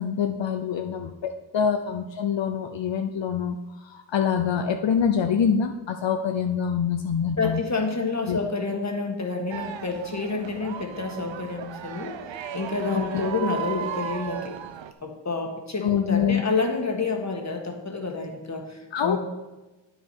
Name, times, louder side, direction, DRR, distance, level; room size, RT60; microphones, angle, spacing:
voice 1, 0.0-7.6 8.3-8.4 12.9-13.2 15.8-16.4 18.9-19.2, left 7 dB, 80° left, 6 dB, 0.6 m, -25 dB
voice 2, 7.4-12.2 12.5-14.6 15.0-19.2, left 4 dB, 40° left, 2 dB, 1.5 m, -29 dB
sound 1, 9.5-14.9, right 8 dB, 90° right, 0.5 m, -35 dB
9.2 x 6.0 x 4.5 m, 1.1 s
wide cardioid pair, 70°, 44 cm